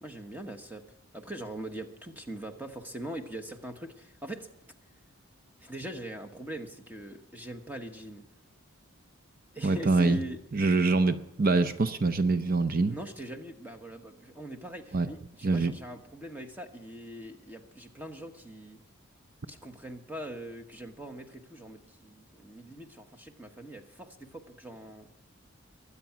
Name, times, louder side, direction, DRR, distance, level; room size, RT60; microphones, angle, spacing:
voice 1, 0.0-0.9 1.1-4.5 5.6-8.3 9.5-10.4 12.9-18.8 19.5-25.1, right 1 dB, 10° right, 5 dB, 1.2 m, -42 dB
voice 2, 9.6-10.2 10.5-13.0 14.9-15.1 15.4-15.7, right 3 dB, 45° right, 11 dB, 0.6 m, -25 dB
22.5 x 8.5 x 5.9 m, 0.85 s
head